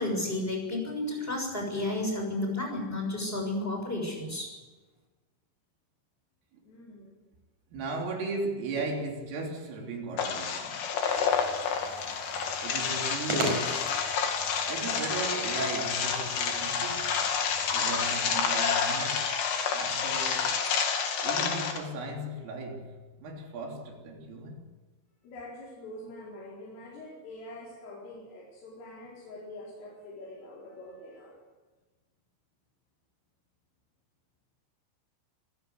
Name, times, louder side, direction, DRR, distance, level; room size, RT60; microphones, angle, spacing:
voice 1, 0.0-4.5, left 2 dB, 10° left, 6.6 m, -31 dB
voice 2, 6.6-7.2 20.9-21.0 25.2-31.4, left 1 dB, 80° left, 7.4 m, -45 dB
voice 3, 7.7-10.9 12.6-14.1 14.7-17.2 17.7-19.3 19.7-20.6 21.2-24.8, right 3 dB, 80° right, 6.0 m, -36 dB
sound 1, 10.2-21.8, left 6 dB, 60° left, 4.3 m, -29 dB
sound 2, 11.1-18.1, right 1 dB, 40° right, 5.9 m, -39 dB
26.5 x 16.0 x 8.1 m
omnidirectional pair, 5.7 m